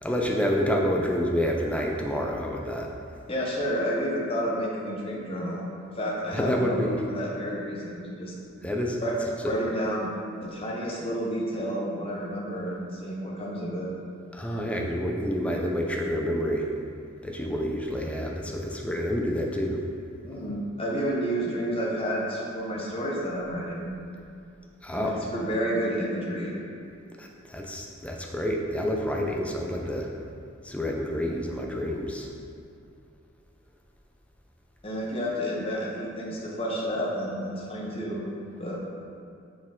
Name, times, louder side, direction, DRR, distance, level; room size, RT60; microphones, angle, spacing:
voice 1, 0.0-2.9 6.3-6.9 8.6-9.0 14.3-16.7 17.2-19.8 24.8-25.2 27.2-30.1 30.6-32.3, equal, 5° left, 0 dB, 0.4 m, -28 dB
voice 2, 3.3-5.7 6.0-8.3 9.0-9.2 9.4-10.1 10.4-13.9 20.2-23.9 24.9-26.5 34.8-38.2 38.6-38.8, equal, 30° left, -3 dB, 0.9 m, -30 dB
5.9 x 4.3 x 3.7 m, 2.5 s
head